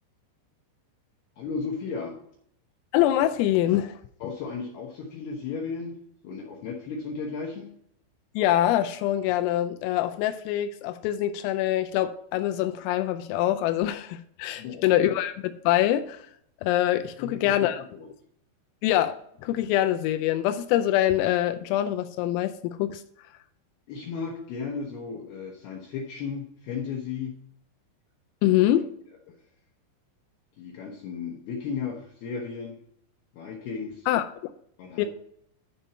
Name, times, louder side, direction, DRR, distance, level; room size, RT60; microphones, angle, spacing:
voice 1, 1.4-2.1 4.2-5.9 6.2-7.7 14.6-14.9 17.2-18.1 23.9-27.4 28.5-28.7 29.3-29.4 30.6-32.8 33.3-34.1 34.8-35.0, left 5 dB, 70° left, -1 dB, 2.6 m, -35 dB
voice 2, 2.9-4.0 8.4-16.3 16.6-17.8 18.8-23.0 28.4-28.9 34.1-34.2 35.0-35.1, left 13 dB, 85° left, 8 dB, 3.3 m, -24 dB
11.0 x 5.4 x 4.3 m, 0.67 s
omnidirectional pair, 5.9 m